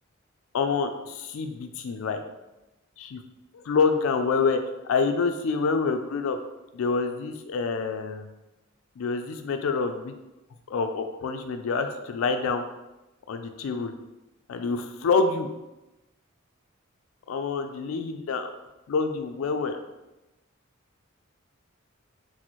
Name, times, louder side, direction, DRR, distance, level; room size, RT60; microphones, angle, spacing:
voice 1, 0.5-2.2 3.0-3.2 3.5-4.6 4.8-6.4 6.7-8.3 9.0-10.1 10.7-12.6 13.3-13.9 14.5-15.5 17.3-18.5 18.9-19.8, left 4 dB, 80° left, 7 dB, 0.4 m, -27 dB
4.1 x 2.0 x 3.0 m, 1.0 s
head